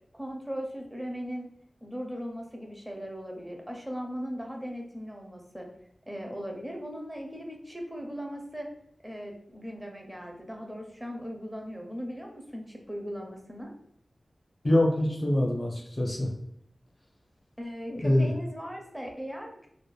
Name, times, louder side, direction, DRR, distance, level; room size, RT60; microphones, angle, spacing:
voice 1, 0.1-1.5 1.8-5.7 6.1-8.7 9.0-13.7 17.6-19.7, equal, 5° right, 1 dB, 0.6 m, -38 dB
voice 2, 14.6-16.3 17.9-18.3, left 1 dB, 40° left, -1 dB, 0.7 m, -25 dB
2.4 x 2.2 x 3.1 m, 0.68 s
wide cardioid pair, 75°, 0 cm